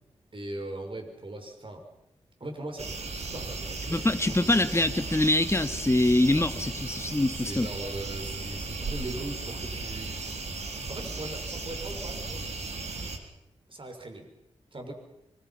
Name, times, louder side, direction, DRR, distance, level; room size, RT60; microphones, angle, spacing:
voice 1, 0.3-1.8 2.4-3.0 3.3-4.5 6.3-6.8 7.3-12.4 13.7-14.3 14.7-14.9, right 1 dB, 45° right, 4 dB, 6.2 m, -40 dB
sound 1, 2.8-13.2, right 3 dB, 70° right, 4.2 m, -36 dB
voice 2, 3.9-7.7, left 1 dB, 25° left, 9 dB, 2.3 m, -24 dB
28.0 x 26.0 x 5.9 m, 0.87 s
cardioid pair, 45°, 12 cm